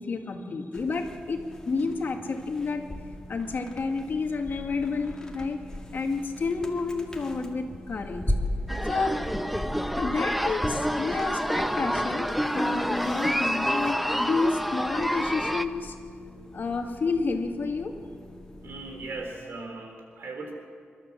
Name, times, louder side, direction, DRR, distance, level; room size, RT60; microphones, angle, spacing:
voice 1, 0.0-2.8 3.3-5.6 5.9-8.2 8.9-9.2 10.0-15.9 16.5-17.9, left 4 dB, 55° left, 3 dB, 2.1 m, -30 dB
sound 1, 0.7-19.3, left 1 dB, 15° left, 2.1 m, -39 dB
sound 2, 8.7-15.7, equal, ahead, 0.7 m, -28 dB
voice 2, 18.6-20.5, right 3 dB, 80° right, 3 dB, 3.9 m, -38 dB
27.0 x 13.0 x 7.4 m, 2.2 s
wide cardioid pair, 120°, 4 cm